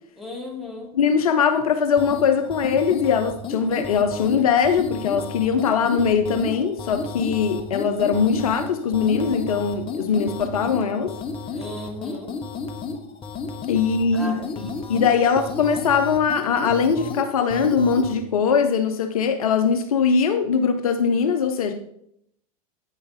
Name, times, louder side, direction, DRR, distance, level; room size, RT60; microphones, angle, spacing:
voice 1, 0.2-0.9 11.5-12.4 14.1-14.4, left 1 dB, ahead, 2.9 m, -35 dB
voice 2, 0.9-11.1 13.7-21.7, left 6 dB, 70° left, 0.7 m, -21 dB
sound 1, 2.0-18.2, left 4 dB, 30° left, 1.1 m, -33 dB
8.8 x 5.9 x 4.1 m
figure-of-eight pair, 85°, 19 cm